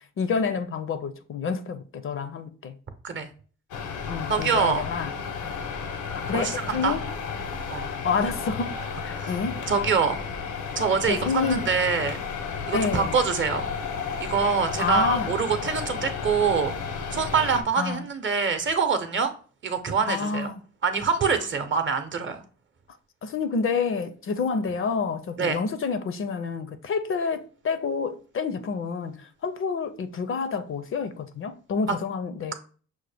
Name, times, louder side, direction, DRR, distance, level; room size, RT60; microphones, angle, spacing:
voice 1, 0.2-2.7 4.1-5.1 6.1-7.0 8.0-8.8 9.0-9.6 11.1-11.7 12.7-13.2 14.8-15.3 17.8-18.0 20.1-20.6 23.2-32.5, left 5 dB, 45° left, 0.5 m, -28 dB
sound 1, 3.7-17.6, left 5 dB, 90° left, 0.7 m, -33 dB
voice 2, 4.3-4.9 6.3-7.0 7.7-7.9 9.2-9.3 9.7-10.2 10.8-12.2 12.7-13.7 14.2-16.7 17.1-19.3 19.6-20.5 20.8-22.4 25.4-25.6 31.9-32.0, right 5 dB, 40° right, 0.7 m, -25 dB
6.2 x 2.1 x 3.3 m
cardioid pair, 90°, 30 cm